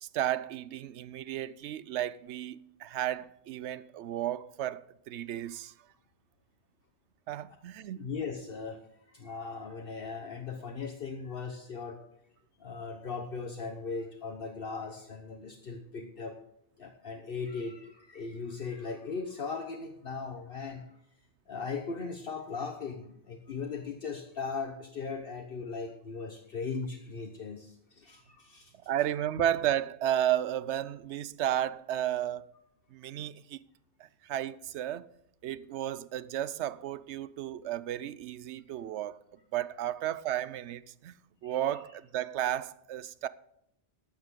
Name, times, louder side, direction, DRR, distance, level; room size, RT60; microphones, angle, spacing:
voice 1, 0.0-5.7 7.3-8.1 28.9-32.5 32.9-33.6 34.0-35.1 35.4-39.2 39.5-41.1 41.4-43.3, right 11 dB, 90° right, 0.9 m, -33 dB
voice 2, 8.0-12.0 12.6-16.4 16.8-21.0 21.5-28.7 41.4-41.6, left 4 dB, 60° left, 1.1 m, -38 dB
14.0 x 12.0 x 3.7 m
omnidirectional pair, 1.1 m